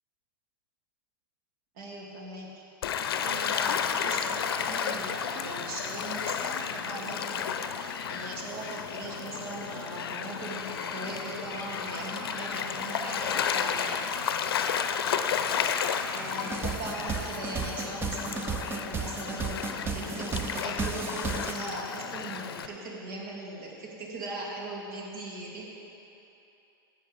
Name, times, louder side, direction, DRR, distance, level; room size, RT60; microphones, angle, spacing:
voice 1, 1.7-2.5 3.2-14.1 16.0-25.6, right 2 dB, 60° right, -4 dB, 2.9 m, -39 dB
Gull seagull / Waves surf, 2.8-22.7, left 7 dB, 80° left, 0.6 m, -32 dB
sound 1, 10.4-14.0, right 2 dB, 80° right, 1.4 m, -49 dB
sound 2, 15.7-15.8 16.2-21.5, right 4 dB, 20° right, 0.6 m, -34 dB
17.0 x 7.8 x 3.5 m, 2.8 s
hypercardioid pair, 105°, 12 cm